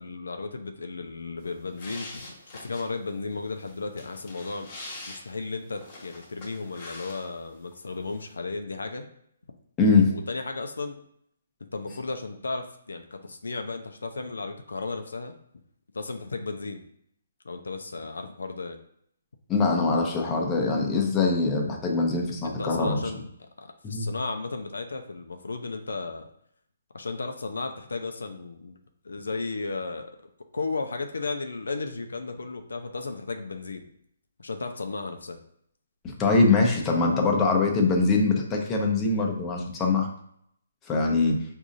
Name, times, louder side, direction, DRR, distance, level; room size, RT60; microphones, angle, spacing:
voice 1, 0.0-2.3 2.5-4.7 5.1-9.0 10.0-11.0 11.7-15.3 15.9-16.8 17.4-18.8 22.4-23.2 23.6-26.2 26.9-28.8 29.0-33.8 34.4-35.4, left 3 dB, 80° left, 5 dB, 0.5 m, -34 dB
sound 1, 1.4-7.6 7.9-8.3, left 2 dB, 35° left, 1.2 m, -44 dB
voice 2, 9.8-10.1 19.5-23.0 23.8-24.1 36.0-40.1 40.9-41.4, left 3 dB, 15° left, 0 dB, 0.7 m, -23 dB
4.8 x 2.6 x 2.6 m, 0.69 s
hypercardioid pair, 145°, 0 cm